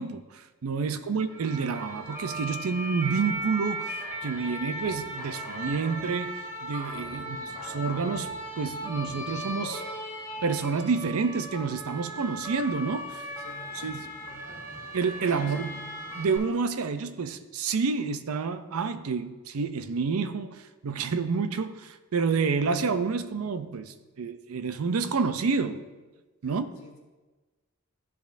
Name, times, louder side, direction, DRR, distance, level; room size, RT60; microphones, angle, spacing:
voice 1, 0.0-6.4 6.6-7.4 7.6-9.8 10.4-13.3 13.7-14.1 14.9-15.7 16.1-25.8 26.4-26.7, right 5 dB, 80° right, 0.5 m, -29 dB
voice 2, 0.8-1.2 7.2-7.5 13.3-13.9 14.2-14.6 15.3-15.6 26.4-27.0, left 2 dB, 85° left, 1.6 m, -48 dB
sound 1, 1.3-16.4, right 1 dB, 15° right, 2.5 m, -37 dB
13.5 x 5.1 x 2.6 m
head